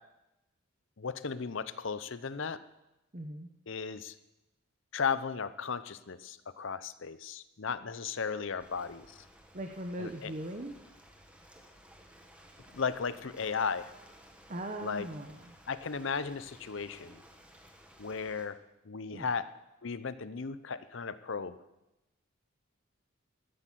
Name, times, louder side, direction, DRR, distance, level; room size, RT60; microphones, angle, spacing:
voice 1, 1.0-2.6 3.7-4.1 4.9-9.2 10.0-10.3 12.7-13.9 14.8-15.1 15.7-17.2 18.0-18.6 18.8-19.5 19.8-21.6, left 5 dB, 60° left, 14 dB, 0.7 m, -35 dB
voice 2, 3.1-3.5 9.5-10.7 14.5-15.6 19.1-19.3, right 1 dB, 35° right, 4 dB, 1.0 m, -39 dB
Ocean, 8.6-18.4, equal, 5° right, 1.4 m, -57 dB
13.5 x 10.0 x 7.6 m, 0.96 s
head